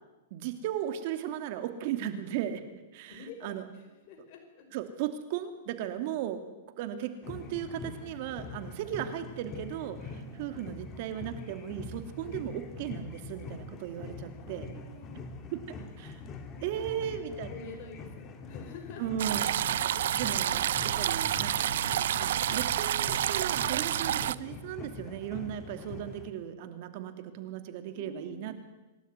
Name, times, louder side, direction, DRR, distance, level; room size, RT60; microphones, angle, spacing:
voice 1, 0.3-2.6 2.9-3.6 4.7-6.4 6.8-14.7 15.5-16.2 16.6-17.5 19.0-19.5 20.1-21.9 22.2-28.5, right 10 dB, 50° right, 9 dB, 2.8 m, -36 dB
voice 2, 3.1-4.6 7.4-7.5 14.2-15.4 16.5-17.2 17.5-19.0 20.0-20.1 27.9-28.6, left 4 dB, 45° left, 3 dB, 5.6 m, -48 dB
sound 1, 7.2-26.3, left 3 dB, 25° left, 2.8 m, -44 dB
sound 2, 19.2-24.4, right 11 dB, 70° right, 0.7 m, -29 dB
27.0 x 12.5 x 9.6 m, 1.1 s
hypercardioid pair, 140°, 0 cm